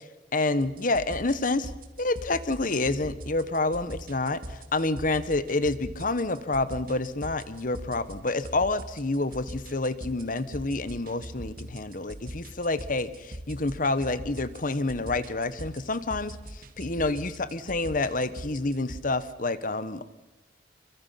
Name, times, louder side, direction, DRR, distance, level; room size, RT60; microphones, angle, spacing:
voice 1, 0.3-1.7 2.0-20.1, left 2 dB, 45° left, 14 dB, 1.2 m, -28 dB
sound 1, 0.6-19.0, right 1 dB, 50° right, 2.3 m, -43 dB
27.0 x 24.0 x 5.8 m, 1.0 s
head